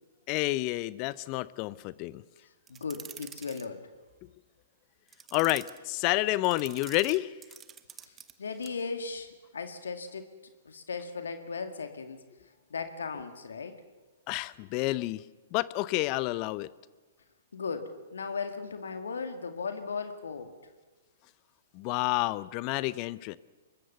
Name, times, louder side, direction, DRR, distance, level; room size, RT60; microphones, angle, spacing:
voice 1, 0.3-2.2 5.3-7.3 14.3-15.2 15.5-16.7 21.7-23.4, left 19 dB, 40° left, 19 dB, 0.7 m, -29 dB
voice 2, 2.7-3.9 8.4-12.2 12.7-13.8 17.5-20.6, left 5 dB, 75° left, 8 dB, 2.1 m, -37 dB
sound 1, 2.7-3.7 5.1-5.8 6.4-8.3 8.6-8.8, right 8 dB, 20° right, 1.2 m, -47 dB
25.0 x 21.5 x 6.9 m, 1.2 s
figure-of-eight pair, 115°, 0 cm